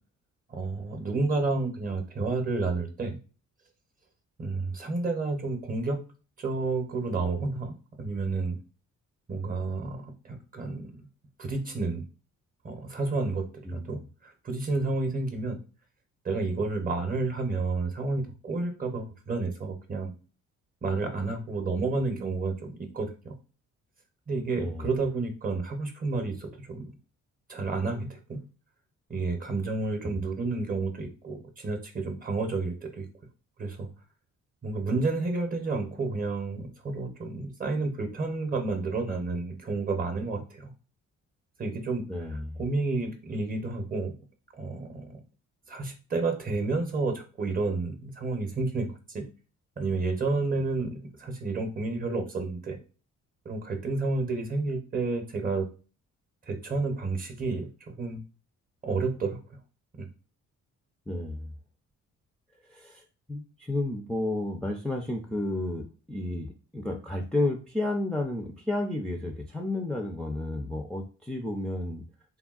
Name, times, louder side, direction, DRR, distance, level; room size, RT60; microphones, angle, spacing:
voice 1, 0.5-3.2 4.4-6.0 6.4-8.6 9.3-10.9 11.4-12.0 12.6-15.6 16.2-20.1 20.8-23.3 24.3-26.9 27.5-28.5 29.1-33.1 33.6-33.9 34.6-40.7 41.6-44.1 44.6-45.2 45.7-49.2 49.8-52.8 53.5-55.7 56.5-58.2 58.8-59.4 59.9-60.1, right 3 dB, 30° right, 4 dB, 0.7 m, -30 dB
voice 2, 42.1-42.6 61.1-61.5 62.7-63.0 63.3-72.0, left 2 dB, 5° left, 0 dB, 0.4 m, -32 dB
3.5 x 2.2 x 2.4 m, 0.36 s
cardioid pair, 90°, 30 cm